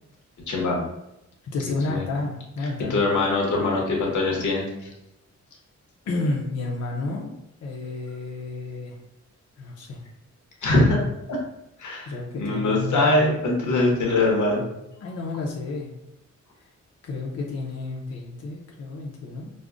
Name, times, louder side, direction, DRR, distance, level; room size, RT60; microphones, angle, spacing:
voice 1, 0.5-0.8 1.9-2.0 2.9-4.7 10.6-11.0 11.3-11.4 11.8-12.1 12.4-14.6, left 2 dB, 90° left, -1 dB, 0.9 m, -22 dB
voice 2, 1.5-3.0 6.1-7.3 7.6-9.0 9.6-10.0 12.1-13.1 15.0-16.0 17.0-19.5, left 3 dB, 60° left, -1 dB, 0.5 m, -31 dB
5.0 x 2.0 x 2.4 m, 0.87 s
wide cardioid pair, 155°, 29 cm